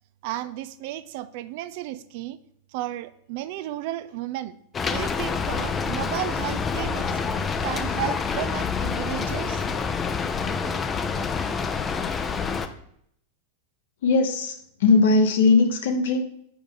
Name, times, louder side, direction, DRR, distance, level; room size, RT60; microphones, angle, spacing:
voice 1, 0.2-2.4 2.7-4.6 4.9-7.2 7.6-9.6, right 14 dB, 50° right, 14 dB, 0.3 m, -33 dB
Rain, 4.7-12.7, left 5 dB, 20° left, 0.5 m, -27 dB
voice 2, 14.0-14.5 14.8-16.2, left 4 dB, 55° left, 4 dB, 0.8 m, -19 dB
7.0 x 5.0 x 3.7 m, 0.69 s
figure-of-eight pair, 90°, 0 cm